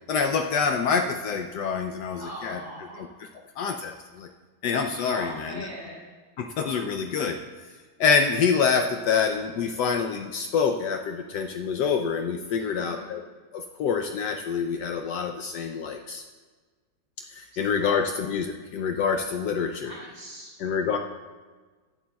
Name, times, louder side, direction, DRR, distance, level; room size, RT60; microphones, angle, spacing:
voice 1, 0.1-2.6 3.0-3.1 3.6-4.3 4.6-5.7 6.4-7.4 8.0-13.2 13.5-16.2 17.3-19.9 20.6-21.0, left 6 dB, 70° left, 5 dB, 1.1 m, -26 dB
voice 2, 2.2-3.0 5.1-6.0 12.6-13.1 17.8-18.2 19.8-20.5, equal, 35° right, -4 dB, 3.8 m, -40 dB
16.0 x 11.5 x 2.3 m, 1.4 s
omnidirectional pair, 2.0 m